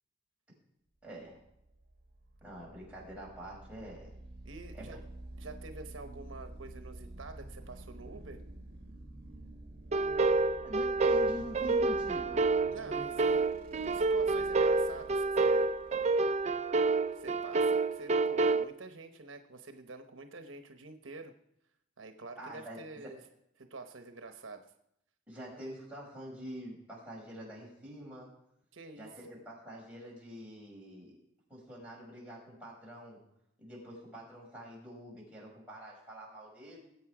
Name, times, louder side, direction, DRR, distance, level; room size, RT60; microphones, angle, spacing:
voice 1, 1.0-1.4 2.4-4.1 4.7-5.0 10.6-12.5 12.8-13.1 22.4-23.1 25.3-28.3 28.9-31.1 31.5-33.2 33.6-36.9, equal, 5° right, -5 dB, 6.2 m, -46 dB
sound 1, 1.2-18.6, right 1 dB, 55° right, 1.9 m, -50 dB
voice 2, 4.4-5.0 5.4-8.4 12.7-15.7 17.1-21.3 22.0-23.2 23.6-24.7 28.7-29.1, right 3 dB, 75° right, 7 dB, 1.0 m, -47 dB
sound 2, 9.9-18.6, right 3 dB, 35° right, 0.5 m, -28 dB
20.0 x 8.5 x 4.9 m, 0.79 s
head